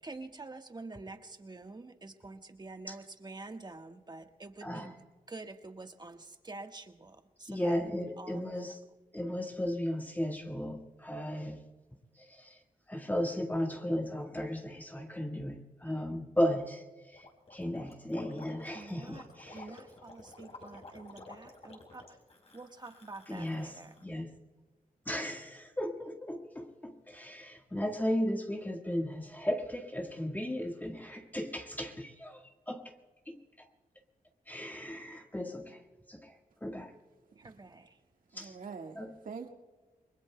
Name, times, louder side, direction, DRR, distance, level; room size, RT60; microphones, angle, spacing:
voice 1, 0.0-8.7 18.7-22.0 22.5-23.9 37.4-37.9, right 3 dB, 30° right, 1.4 m, -47 dB
voice 2, 4.6-4.9 7.5-8.8 9.1-11.7 12.2-12.6 12.9-19.7 23.3-24.4 25.1-32.9 33.3-33.4 34.5-35.8 36.1-36.3 36.6-36.9 38.3-38.6 39.0-39.1, equal, 10° left, 1.5 m, -35 dB
Gurgling, 17.1-24.0, left 3 dB, 45° left, 4.3 m, -52 dB
voice 3, 37.3-37.8 38.3-39.5, right 5 dB, 70° right, 1.7 m, -45 dB
29.0 x 21.5 x 2.2 m
cardioid pair, 70°, 15 cm